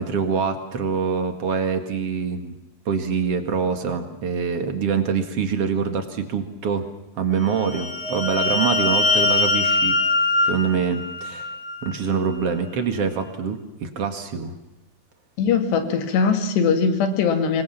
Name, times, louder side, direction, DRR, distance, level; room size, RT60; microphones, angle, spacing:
voice 1, 0.0-2.6 2.9-6.9 7.2-10.0 10.4-11.5 11.8-14.6, right 6 dB, 45° right, 7 dB, 2.3 m, -25 dB
sound 1, 7.5-12.0, left 2 dB, 30° left, 5.9 m, -22 dB
voice 2, 15.4-17.6, left 5 dB, 85° left, 7 dB, 4.3 m, -20 dB
25.5 x 21.5 x 7.3 m, 0.89 s
omnidirectional pair, 4.7 m